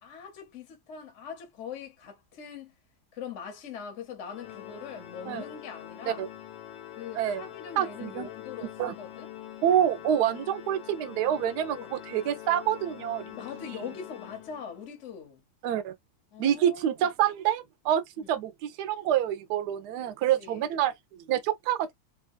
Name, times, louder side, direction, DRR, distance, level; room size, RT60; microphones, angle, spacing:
voice 1, 0.0-2.7 3.1-6.2 7.0-9.3 11.7-12.0 13.3-15.4 16.3-17.1 18.2-18.3 20.4-20.7, left 7 dB, 55° left, 0.9 m, -42 dB
Organ, 4.3-15.0, left 12 dB, 80° left, 1.5 m, -44 dB
voice 2, 7.8-8.3 8.8-8.9 9.6-13.2 15.6-15.9 16.4-21.9, right 10 dB, 70° right, 1.0 m, -27 dB
3.3 x 2.3 x 2.4 m
omnidirectional pair, 2.1 m